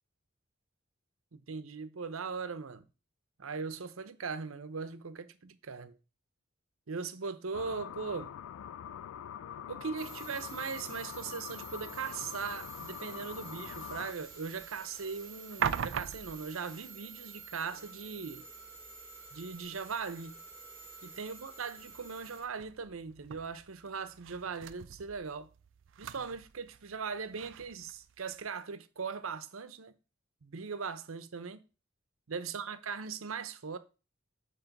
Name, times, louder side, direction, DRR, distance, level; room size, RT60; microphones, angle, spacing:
voice 1, 1.3-2.8 3.4-6.0 6.9-8.3 9.7-18.5 19.3-20.4 21.0-25.5 26.0-29.9 30.4-31.6 32.3-33.8, right 5 dB, 85° right, 0.7 m, -39 dB
sound 1, 7.5-14.1, left 9 dB, 85° left, 0.3 m, -44 dB
sound 2, 10.0-22.4, right 6 dB, 15° left, 2.1 m, -50 dB
sound 3, 13.2-28.5, right 7 dB, 65° right, 0.4 m, -44 dB
9.1 x 3.2 x 5.9 m
head